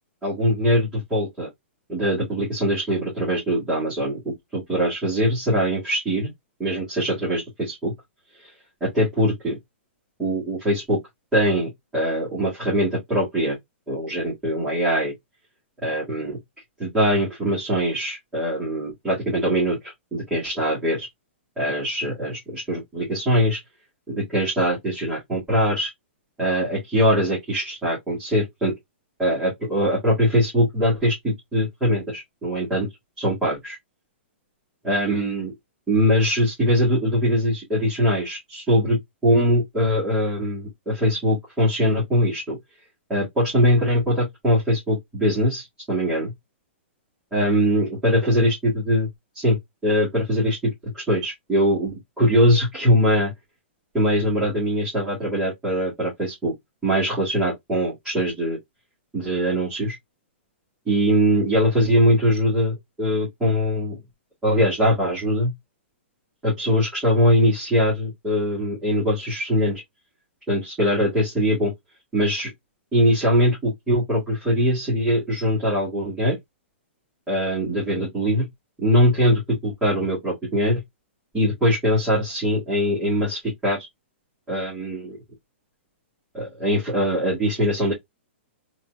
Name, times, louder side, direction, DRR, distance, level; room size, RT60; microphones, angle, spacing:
voice 1, 0.2-1.5 1.9-6.3 6.6-7.9 8.4-8.5 8.8-9.6 10.2-11.0 11.3-13.6 13.9-15.1 15.8-16.4 16.8-21.1 21.6-23.6 24.1-25.9 26.4-28.7 29.2-32.9 33.2-33.8 34.8-35.5 35.9-42.6 43.1-46.3 47.3-49.1 49.3-49.6 49.8-53.3 53.9-56.5 56.8-58.6 59.1-60.0 60.9-64.0 64.4-65.5 66.4-69.8 70.5-71.7 72.1-72.5 72.9-76.4 77.3-78.5 78.8-80.8 81.3-83.9 84.5-85.2 86.3-87.9, equal, 5° right, 2.2 m, -22 dB
4.2 x 3.0 x 2.3 m
hypercardioid pair, 145°, 7 cm